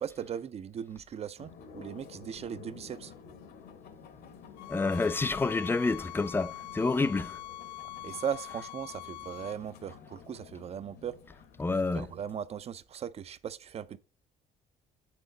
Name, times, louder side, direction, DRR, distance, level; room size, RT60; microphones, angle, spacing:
voice 1, 0.0-3.1 8.0-11.2 11.9-14.0, right 8 dB, 40° right, 0.5 m, -38 dB
sound 1, 1.4-12.3, left 6 dB, 70° left, 1.1 m, -51 dB
sound 2, 4.6-9.6, left 13 dB, 85° left, 0.5 m, -43 dB
voice 2, 4.7-7.4 11.6-12.1, left 3 dB, 15° left, 0.4 m, -28 dB
7.5 x 6.0 x 3.9 m
cardioid pair, 110°, 17 cm